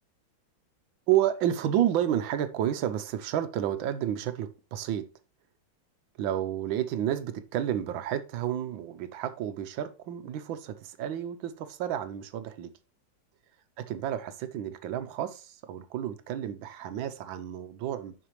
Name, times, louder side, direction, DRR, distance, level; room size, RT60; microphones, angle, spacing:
voice 1, 1.1-5.1 6.2-12.7 13.8-18.1, right 11 dB, 75° right, 1.4 m, -30 dB
7.8 x 5.9 x 3.0 m
omnidirectional pair, 2.2 m